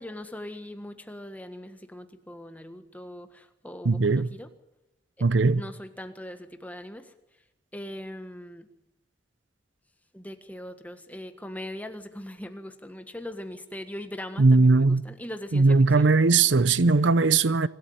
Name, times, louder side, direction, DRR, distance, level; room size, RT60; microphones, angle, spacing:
voice 1, 0.0-4.5 5.2-7.1 7.7-8.7 10.1-16.1, left 1 dB, 10° left, 1.5 m, -40 dB
voice 2, 3.8-4.3 5.2-5.6 14.4-15.0 15.5-17.7, right 3 dB, 85° right, 0.7 m, -19 dB
25.5 x 13.0 x 9.4 m
head